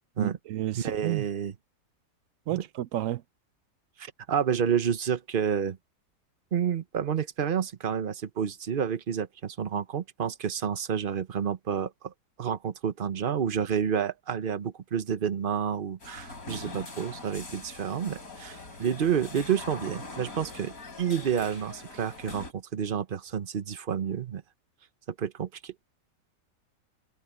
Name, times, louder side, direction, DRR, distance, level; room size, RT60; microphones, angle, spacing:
voice 1, 0.2-1.2 2.5-3.2, right 14 dB, 70° right, 0.8 m, -31 dB
voice 2, 0.7-1.5 2.5-2.6 4.0-5.8 6.5-12.1 12.4-24.4 25.2-25.7, right 8 dB, 40° right, 0.9 m, -29 dB
sound 1, 16.0-22.5, left 2 dB, 55° left, 5.0 m, -42 dB
omnidirectional pair, 1.8 m